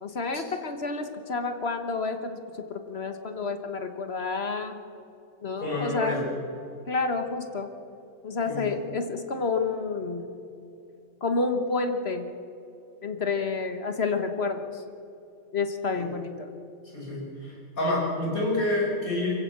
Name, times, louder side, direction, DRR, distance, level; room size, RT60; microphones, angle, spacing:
voice 1, 0.0-4.8 5.4-6.3 6.9-7.7 8.2-10.2 11.2-12.3 13.0-14.6 15.5-16.5, left 4 dB, 45° left, 7 dB, 1.5 m, -29 dB
voice 2, 5.6-6.2 8.5-8.7 15.9-16.0 16.9-19.3, left 2 dB, 70° left, -3 dB, 6.5 m, -28 dB
24.5 x 15.5 x 7.4 m, 2.7 s
omnidirectional pair, 1.5 m